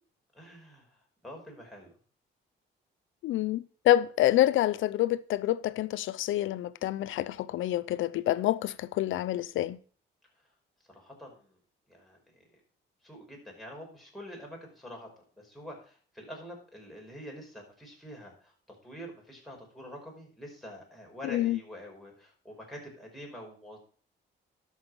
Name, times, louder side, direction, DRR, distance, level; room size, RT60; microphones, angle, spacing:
voice 1, 0.3-0.9 1.2-1.9 10.9-11.6 11.9-12.4 13.0-18.5 18.8-23.8, equal, ahead, 4.9 m, -46 dB
voice 2, 3.2-9.8 21.2-21.6, left 13 dB, 80° left, 0.6 m, -27 dB
12.0 x 6.4 x 5.4 m
cardioid pair, 90°, 20 cm